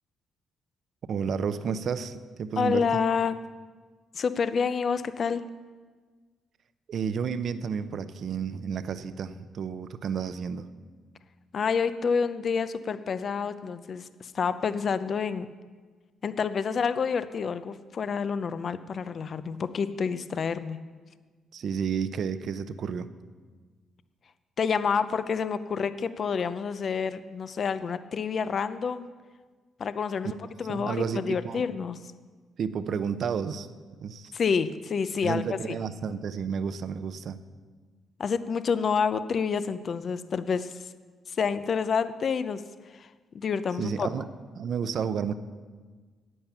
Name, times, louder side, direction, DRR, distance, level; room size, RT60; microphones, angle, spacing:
voice 1, 1.1-3.0 6.9-10.7 21.5-23.1 30.7-31.6 32.6-33.7 34.0-34.3 35.2-37.4 43.8-44.2 44.6-45.3, right 6 dB, 60° right, 12 dB, 0.6 m, -31 dB
voice 2, 2.6-3.4 4.1-5.4 11.5-15.5 16.2-20.8 24.6-29.1 29.8-32.0 34.3-35.4 38.2-40.7 41.4-42.6 42.9-43.1 43.3-44.1, left 6 dB, 50° left, 13 dB, 0.5 m, -28 dB
11.0 x 8.7 x 7.0 m, 1.5 s
cardioid pair, 90°, 0 cm